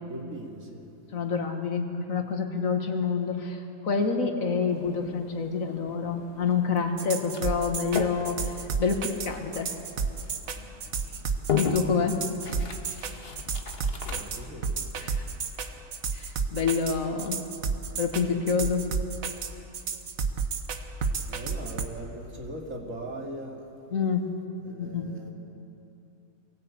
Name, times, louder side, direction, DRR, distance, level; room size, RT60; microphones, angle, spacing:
voice 1, 0.0-0.9 10.4-10.7 14.0-14.9 15.6-15.9 21.3-23.7 24.6-25.3, right 1 dB, 75° right, 0 dB, 3.0 m, -40 dB
voice 2, 1.1-9.7 11.6-12.2 15.0-15.2 16.1-17.4 18.0-18.9 23.9-24.3 24.8-25.1, left 5 dB, 90° left, 4 dB, 2.1 m, -28 dB
sound 1, 4.7-14.5, left 5 dB, 50° left, 1.5 m, -37 dB
sound 2, 7.0-21.8, right 5 dB, 90° right, 1.6 m, -31 dB
23.5 x 17.5 x 8.7 m, 2.9 s
omnidirectional pair, 1.4 m